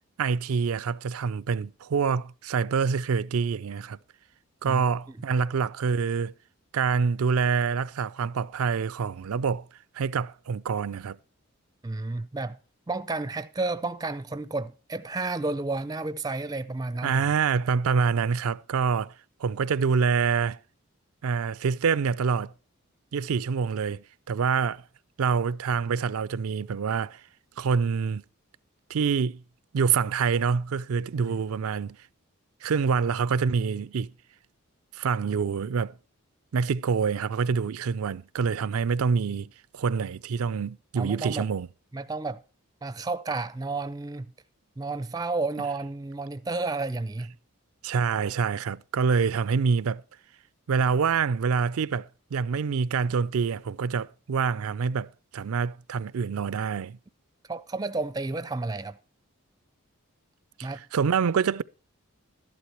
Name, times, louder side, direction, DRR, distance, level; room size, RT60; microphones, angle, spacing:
voice 1, 0.2-4.0 4.6-6.3 6.7-9.7 9.9-11.2 17.0-19.1 19.4-20.6 21.2-22.5 23.1-24.8 25.2-27.2 27.6-28.2 28.9-29.4 29.7-32.0 32.6-34.1 34.9-35.9 36.5-41.7 47.8-50.0 50.7-57.0 60.6-61.6, right 5 dB, 85° right, 0.4 m, -26 dB
voice 2, 11.8-12.6 12.9-17.2 31.2-31.4 41.0-41.5 41.9-42.4 42.8-44.3 44.8-47.3 57.5-59.0 60.6-60.8, right 3 dB, 15° right, 0.4 m, -31 dB
13.0 x 11.5 x 2.9 m
head